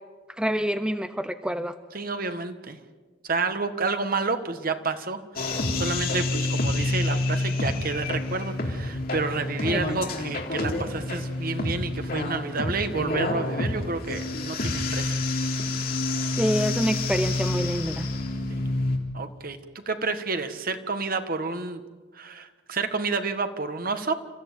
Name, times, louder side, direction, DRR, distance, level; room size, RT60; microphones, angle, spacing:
voice 1, 0.4-1.7 9.6-10.1 16.4-18.1, equal, 5° right, 10 dB, 0.7 m, -27 dB
voice 2, 1.9-2.8 3.2-15.2 18.5-18.7 19.1-19.6 19.9-21.8 22.1-24.1, right 3 dB, 50° right, 8 dB, 1.6 m, -30 dB
sound 1, 5.4-19.0, left 2 dB, 55° left, 3.2 m, -28 dB
29.5 x 14.5 x 9.1 m, 1.4 s
head